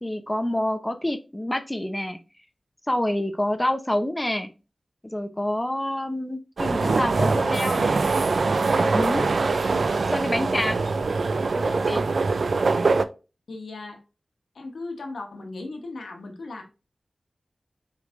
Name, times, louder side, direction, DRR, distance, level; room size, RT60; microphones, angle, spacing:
voice 1, 0.0-2.2 2.9-4.5 5.0-8.1 8.7-9.3 10.1-10.8 11.5-12.0, left 1 dB, 20° left, 0.6 m, -27 dB
sound 1, 6.6-13.0, right 3 dB, 75° right, 0.3 m, -23 dB
voice 2, 13.5-14.0 14.5-16.6, left 3 dB, 90° left, 0.9 m, -37 dB
5.0 x 3.2 x 2.4 m
cardioid pair, 40°, 0 cm